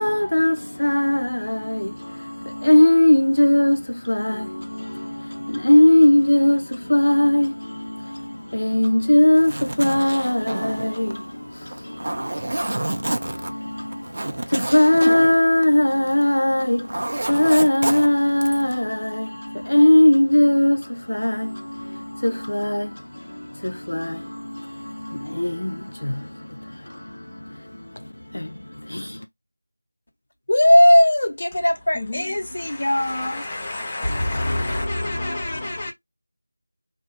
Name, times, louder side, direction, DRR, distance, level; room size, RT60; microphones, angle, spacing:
voice 1, 0.0-29.3, left 1 dB, 85° left, 0.3 m, -20 dB
Zipper (clothing), 9.2-16.4 16.6-18.8, right 1 dB, 55° right, 0.4 m, -29 dB
voice 2, 30.5-33.4 34.0-35.9, left 1 dB, 50° left, 0.7 m, -19 dB
voice 3, 31.9-35.9, left 2 dB, 15° left, 0.6 m, -32 dB
2.4 x 2.0 x 2.8 m
figure-of-eight pair, 175°, 0 cm